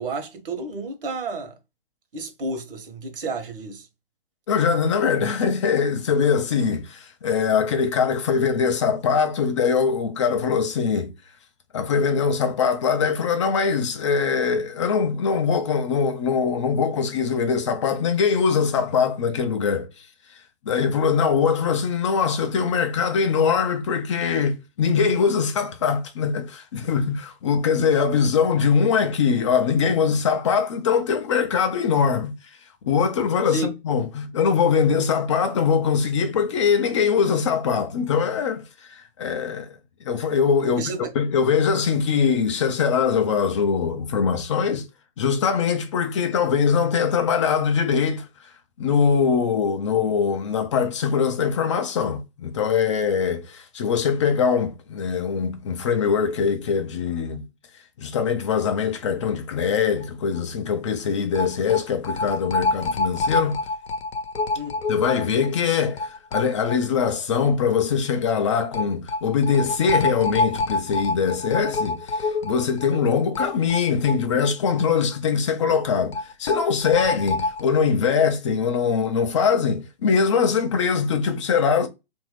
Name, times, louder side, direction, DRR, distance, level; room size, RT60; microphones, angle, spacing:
voice 1, 0.0-1.5 2.1-3.9 33.5-33.7 40.8-41.1 64.5-64.7, right 3 dB, 60° right, 1.1 m, -31 dB
voice 2, 4.5-11.1 11.7-20.1 20.3-20.4 20.7-32.3 32.8-39.8 40.0-40.8 41.2-44.9 45.2-48.5 48.8-57.4 58.0-63.6 64.9-81.9, left 6 dB, 30° left, 0.4 m, -22 dB
sound 1, 60.0-60.1 60.4-60.5 61.3-67.1 67.4-67.5 68.7-74.8 75.1-75.2 76.1-77.6, left 3 dB, 80° left, 0.7 m, -27 dB
2.9 x 2.6 x 3.1 m
figure-of-eight pair, 125°, 30 cm